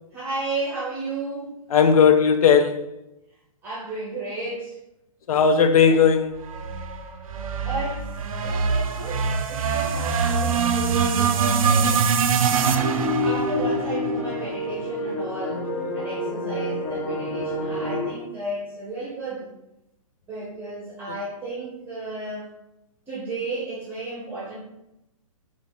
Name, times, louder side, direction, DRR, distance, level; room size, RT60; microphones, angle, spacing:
voice 1, 0.1-1.5 3.6-4.8 5.8-6.0 7.6-8.0 8.4-12.1 12.8-19.5 20.3-22.5 23.1-24.6, right 2 dB, 10° right, -7 dB, 0.8 m, -33 dB
voice 2, 1.7-2.8 5.3-6.4, left 6 dB, 80° left, 7 dB, 0.4 m, -17 dB
sound 1, 6.4-14.8, right 6 dB, 70° right, 0.5 m, -24 dB
sound 2, 12.8-18.1, left 1 dB, 35° left, 0.9 m, -28 dB
3.8 x 2.4 x 3.7 m, 0.90 s
hypercardioid pair, 150°, 18 cm